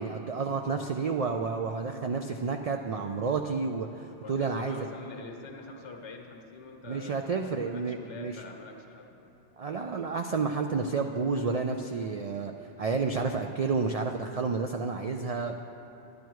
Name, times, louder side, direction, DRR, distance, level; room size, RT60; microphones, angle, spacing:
voice 1, 0.0-4.9 6.9-8.4 9.6-12.5 12.8-15.6, right 4 dB, 75° right, 4 dB, 0.3 m, -30 dB
voice 2, 4.2-9.3, left 3 dB, 80° left, 2 dB, 1.3 m, -45 dB
10.5 x 10.5 x 4.6 m, 2.9 s
omnidirectional pair, 1.2 m